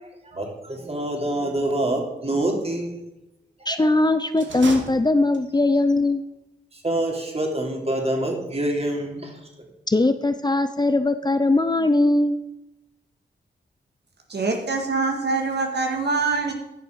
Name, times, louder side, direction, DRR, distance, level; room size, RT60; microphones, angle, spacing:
voice 1, 0.3-3.0 6.8-9.3, right 1 dB, 35° right, 1 dB, 3.0 m, -26 dB
voice 2, 3.7-6.2 9.9-12.4, left 2 dB, 20° left, 10 dB, 0.6 m, -20 dB
sound 1, 4.3-5.7, right 4 dB, 85° right, 1.3 m, -35 dB
voice 3, 14.3-16.5, right 4 dB, 65° right, 2 dB, 1.8 m, -24 dB
10.5 x 6.0 x 6.4 m, 0.89 s
cardioid pair, 50°, 19 cm